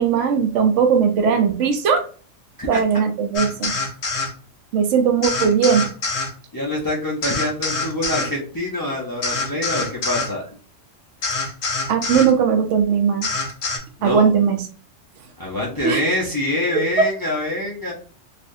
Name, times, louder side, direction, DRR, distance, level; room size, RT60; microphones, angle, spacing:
voice 1, 0.0-2.1 2.7-3.7 4.7-5.9 11.9-13.3 14.0-14.6 15.8-16.0 16.7-17.1, right 6 dB, 75° right, 6 dB, 0.9 m, -18 dB
sound 1, 3.3-4.3 5.2-6.3 7.2-8.3 9.2-10.3 11.2-12.3 13.2-13.8, left 3 dB, 85° left, 1.2 m, -25 dB
voice 2, 6.5-10.5 14.0-14.4 15.4-17.9, left 1 dB, 25° left, -3 dB, 0.4 m, -25 dB
3.4 x 2.4 x 2.6 m, 0.41 s
omnidirectional pair, 1.3 m